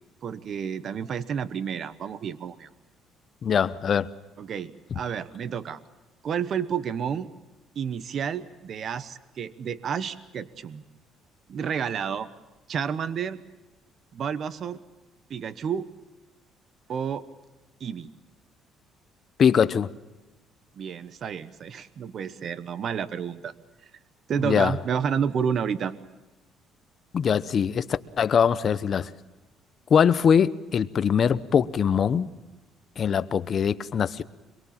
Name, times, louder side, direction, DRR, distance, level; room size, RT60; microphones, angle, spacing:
voice 1, 0.2-2.7 4.4-5.8 6.2-7.3 7.8-10.8 11.5-12.3 12.7-13.4 14.1-14.8 15.3-15.9 16.9-17.2 17.8-18.1 20.8-23.5 24.3-25.9, right 7 dB, 50° right, 1.0 m, -30 dB
voice 2, 3.4-4.1 19.4-19.9 24.4-24.8 27.1-27.9 28.2-29.1 29.9-32.3 33.0-34.2, left 7 dB, 40° left, 0.8 m, -22 dB
25.5 x 22.5 x 7.4 m
cardioid pair, 120°, 0 cm